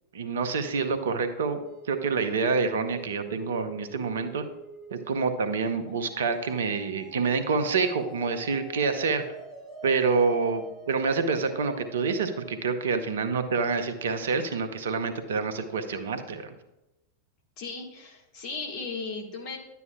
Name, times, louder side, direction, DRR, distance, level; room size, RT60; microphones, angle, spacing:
voice 1, 0.1-1.6 1.8-4.4 4.9-9.2 9.8-16.5, right 4 dB, 65° right, 9 dB, 0.7 m, -27 dB
sound 1, 1.6-12.6, right 3 dB, 20° left, 3.0 m, -47 dB
voice 2, 17.6-19.6, left 4 dB, 40° left, 1 dB, 1.7 m, -36 dB
10.5 x 8.2 x 2.3 m, 0.95 s
figure-of-eight pair, 90°, 0 cm